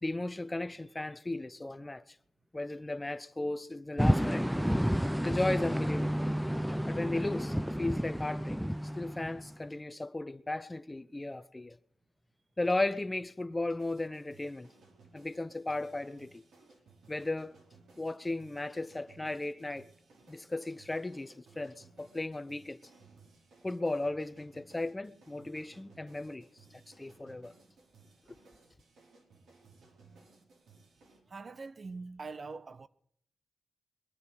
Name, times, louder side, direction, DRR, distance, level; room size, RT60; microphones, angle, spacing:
voice 1, 0.0-2.0 2.5-4.5 5.2-6.2 6.9-8.6 9.0-11.7 12.6-14.7 15.1-16.4 17.1-17.5 18.0-19.9 20.3-22.8 23.6-26.5 26.7-27.5, left 2 dB, 20° left, 0.8 m, -35 dB
sound 1, 4.0-9.7, equal, ahead, 0.5 m, -31 dB
sound 2, 13.7-31.2, right 3 dB, 80° right, 4.6 m, -61 dB
voice 2, 31.3-32.9, right 4 dB, 50° right, 0.7 m, -43 dB
22.5 x 9.4 x 6.5 m
cardioid pair, 55°, 0 cm